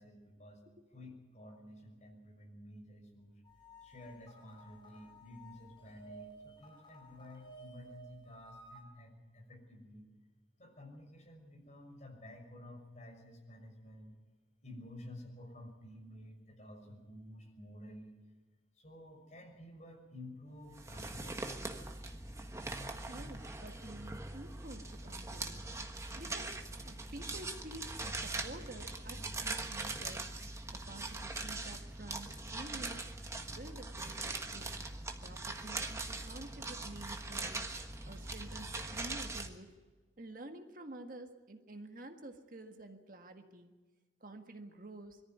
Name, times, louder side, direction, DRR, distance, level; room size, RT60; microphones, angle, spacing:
voice 1, 0.0-0.6 0.9-3.4 3.8-10.1 10.6-14.1 14.6-18.2 18.8-21.6, left 1 dB, 40° left, 1 dB, 6.2 m, -52 dB
sound 1, 3.4-8.8, right 2 dB, 25° left, 5.5 m, -55 dB
sound 2, 20.7-39.5, right 2 dB, 15° right, 1.4 m, -41 dB
voice 2, 23.1-25.7 26.2-26.6 26.9-30.3 30.7-33.0 33.5-34.8 35.2-37.7 38.0-39.7 40.2-43.8 44.2-45.2, right 1 dB, 50° right, 5 dB, 1.7 m, -50 dB
22.0 x 14.5 x 9.4 m, 1.3 s
head